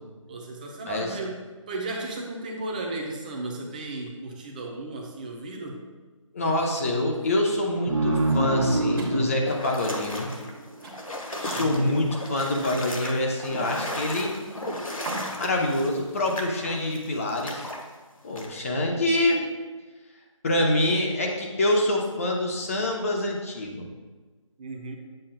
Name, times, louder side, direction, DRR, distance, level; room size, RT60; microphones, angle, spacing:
voice 1, 0.3-1.4 1.7-5.8 11.5-11.9 24.6-24.9, right 2 dB, 15° right, 0 dB, 0.6 m, -35 dB
voice 2, 0.9-1.2 6.3-10.3 11.4-14.4 15.4-17.7 18.2-19.5 20.4-23.9, left 1 dB, 25° left, 0 dB, 0.8 m, -26 dB
sound 1, 7.9-11.0, right 2 dB, 75° right, 1.4 m, -26 dB
sound 2, 9.0-16.7, right 2 dB, 40° right, 1.3 m, -43 dB
sound 3, 9.5-17.8 18.4-18.5, left 1 dB, 85° left, 1.4 m, -35 dB
8.4 x 7.6 x 2.2 m, 1.3 s
figure-of-eight pair, 160°, 17 cm